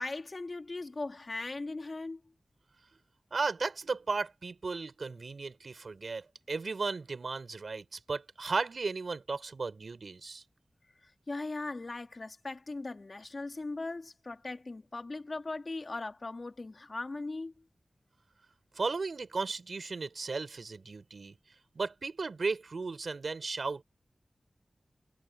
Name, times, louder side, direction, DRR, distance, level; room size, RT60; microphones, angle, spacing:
voice 1, 0.0-2.2 11.0-17.5, left 3 dB, 50° left, 3.0 m, -39 dB
voice 2, 3.3-10.4 18.7-21.4 21.7-23.8, right 4 dB, 70° right, 4.7 m, -35 dB
cardioid pair, 55°, 0 cm